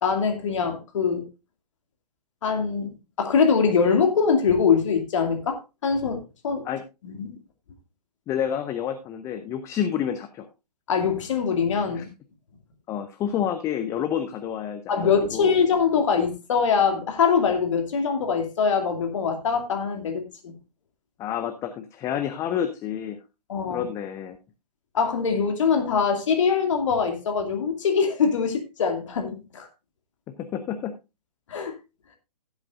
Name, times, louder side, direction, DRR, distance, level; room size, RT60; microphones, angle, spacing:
voice 1, 0.0-1.3 2.4-6.2 6.4-6.6 7.0-7.3 10.9-12.1 14.9-20.5 23.5-23.9 24.9-29.7 31.5-31.7, left 6 dB, 50° left, 2.4 m, -23 dB
voice 2, 8.3-10.5 11.9-12.0 12.9-15.5 21.2-23.2 23.7-24.4 30.4-30.9, left 9 dB, 15° left, 0.6 m, -29 dB
16.0 x 8.1 x 2.5 m
figure-of-eight pair, 120°, 20 cm